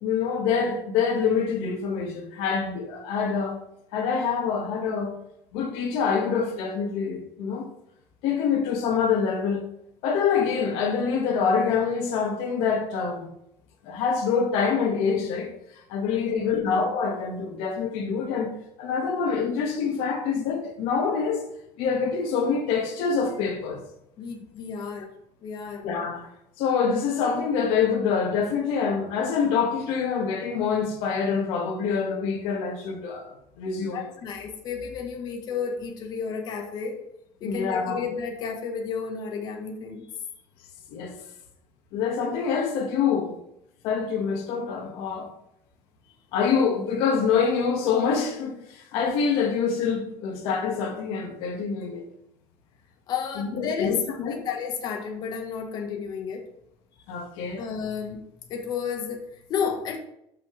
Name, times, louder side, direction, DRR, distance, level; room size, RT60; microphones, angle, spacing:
voice 1, 0.0-3.6 3.9-5.1 5.5-7.7 8.2-9.6 10.0-13.3 13.8-15.5 15.9-18.5 18.8-21.4 21.8-23.8 25.8-26.3 26.6-34.0 37.4-38.0 40.9-41.1 41.9-43.3 43.8-45.3 46.3-52.1 53.4-54.4 57.1-57.6, left 6 dB, 65° left, 2.0 m, -26 dB
voice 2, 16.3-16.7 24.2-25.1 25.4-25.9 33.9-37.0 37.4-40.1 53.1-56.4 57.6-58.2 58.5-60.0, left 6 dB, 40° left, 1.6 m, -32 dB
12.0 x 6.1 x 3.5 m
cardioid pair, 160°, 10 cm